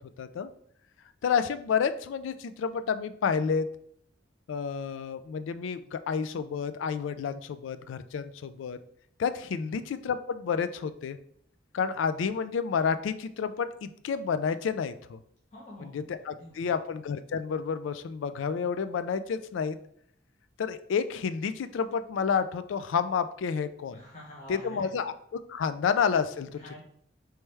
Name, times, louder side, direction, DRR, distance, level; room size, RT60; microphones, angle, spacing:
voice 1, 0.2-0.5 1.2-3.7 4.5-8.8 9.2-11.2 11.7-15.2 15.8-19.8 20.6-24.0 24.5-26.5, left 6 dB, 85° left, 12 dB, 0.3 m, -30 dB
voice 2, 15.5-16.7 23.9-24.9 26.4-26.8, left 1 dB, 40° left, -5 dB, 0.9 m, -47 dB
4.5 x 3.2 x 3.3 m, 0.66 s
head